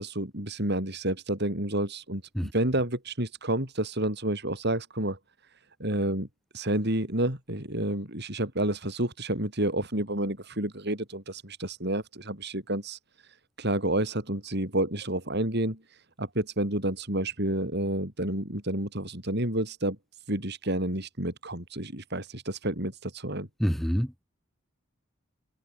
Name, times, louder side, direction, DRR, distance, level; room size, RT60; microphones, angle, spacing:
voice 1, 0.0-6.3 6.5-23.5, right 1 dB, 55° right, 7.8 m, -30 dB
voice 2, 23.6-24.2, equal, ahead, 3.4 m, -27 dB
head